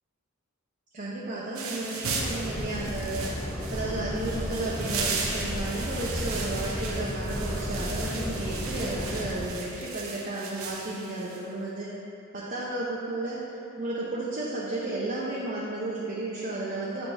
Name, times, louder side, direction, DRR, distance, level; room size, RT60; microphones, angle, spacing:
voice 1, 0.9-3.3 3.7-11.9 12.3-13.4 13.8-17.1, right 2 dB, 40° right, -6 dB, 0.7 m, -33 dB
sound 1, 1.6-11.4, right 4 dB, 80° right, 0.8 m, -36 dB
sound 2, 2.1-9.5, equal, 10° left, 0.6 m, -33 dB
8.6 x 4.3 x 3.3 m, 2.7 s
head